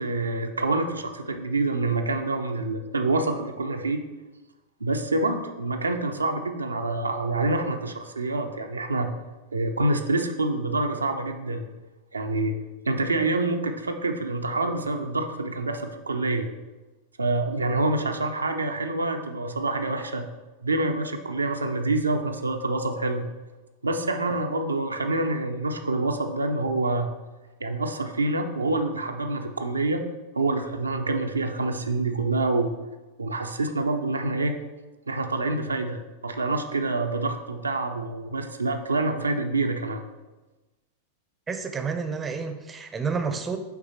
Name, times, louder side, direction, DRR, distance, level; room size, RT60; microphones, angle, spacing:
voice 1, 0.0-4.0 4.8-9.1 9.5-11.6 12.1-12.5 12.9-16.5 17.2-20.3 20.6-23.3 23.8-27.1 27.6-30.0 30.4-32.7 33.2-34.6 35.1-40.0, right 2 dB, 80° right, 4 dB, 0.5 m, -26 dB
voice 2, 41.5-43.6, right 5 dB, 20° right, 8 dB, 0.6 m, -30 dB
5.8 x 3.9 x 4.3 m, 1.1 s
figure-of-eight pair, 90°, 0 cm